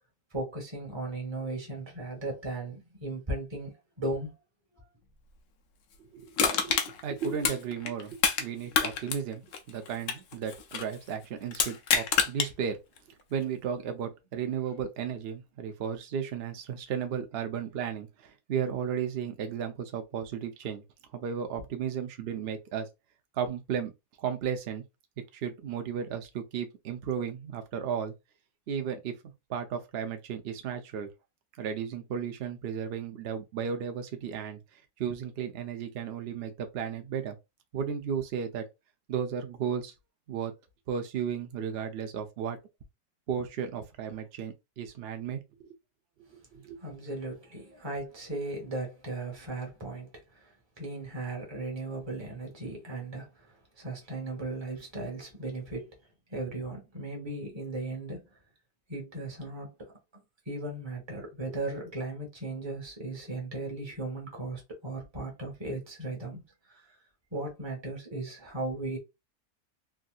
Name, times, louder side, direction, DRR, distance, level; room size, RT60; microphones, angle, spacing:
voice 1, 0.3-4.3 4.7-4.8 46.8-56.0 56.3-58.3 58.9-59.9 60.5-67.0 67.3-69.0, right 2 dB, 20° right, 1.0 m, -37 dB
voice 2, 6.0-12.8 13.3-20.8 21.1-22.9 23.3-23.9 24.2-24.8 25.3-28.1 28.7-29.1 29.5-31.1 31.6-34.6 35.0-37.3 37.7-38.6 39.1-39.9 40.3-40.5 40.9-42.6 43.3-45.7 46.3-46.8, right 7 dB, 55° right, 0.7 m, -34 dB
Crushing, 6.4-8.5 8.7-10.9 11.5-12.5 13.0-13.1, left 7 dB, 75° left, 1.1 m, -27 dB
3.4 x 2.6 x 2.3 m
omnidirectional pair, 1.7 m